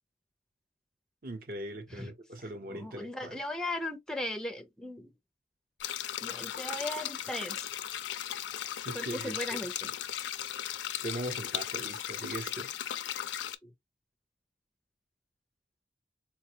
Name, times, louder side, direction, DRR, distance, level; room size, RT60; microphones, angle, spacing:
voice 1, 1.2-3.4 8.8-9.4 9.8-10.0 11.0-12.7, right 1 dB, 50° right, 0.8 m, -40 dB
voice 2, 2.7-5.1 6.2-7.7 8.9-9.7 13.6-13.7, left 1 dB, 5° left, 0.4 m, -37 dB
sound 1, 5.8-13.6, left 11 dB, 80° left, 0.4 m, -37 dB
4.2 x 2.2 x 2.8 m
head